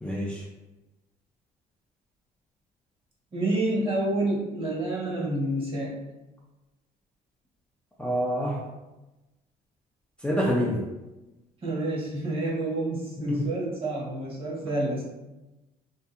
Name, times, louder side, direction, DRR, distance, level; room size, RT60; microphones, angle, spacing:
voice 1, 0.0-0.4 8.0-8.6 10.2-10.8 13.2-13.5, equal, 5° left, -6 dB, 0.4 m, -27 dB
voice 2, 3.3-6.0 11.6-15.0, right 1 dB, 35° right, -4 dB, 0.9 m, -28 dB
2.7 x 2.3 x 2.4 m, 1.1 s
cardioid pair, 110°, 17 cm